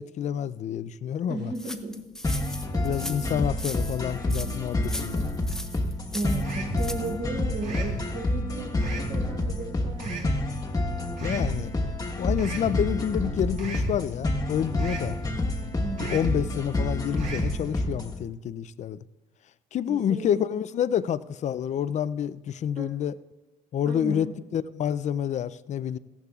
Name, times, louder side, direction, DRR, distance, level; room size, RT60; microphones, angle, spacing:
voice 1, 0.0-1.5 2.8-5.3 11.2-11.7 12.2-15.1 16.0-19.0 19.7-23.2 23.7-24.3 24.5-26.0, left 9 dB, 45° left, 16 dB, 0.4 m, -28 dB
voice 2, 1.3-2.0 2.7-2.8 3.2-3.4 6.1-10.3 15.7-16.2 19.9-20.3 22.8-23.0 23.8-24.2, right 2 dB, 65° right, -3 dB, 3.7 m, -35 dB
sound 1, 1.5-7.2, left 1 dB, 5° left, 0.7 m, -39 dB
sound 2, 2.2-18.2, left 1 dB, 20° left, 1.2 m, -29 dB
sound 3, 6.4-6.9 7.6-8.0 8.8-9.2 10.0-10.4 11.2-11.5 12.4-12.8 13.6-14.0 14.8-15.2 16.0-16.4 17.2-17.6, right 3 dB, 45° right, 2.9 m, -34 dB
17.5 x 14.5 x 2.4 m, 1.1 s
cardioid pair, 110°, 17 cm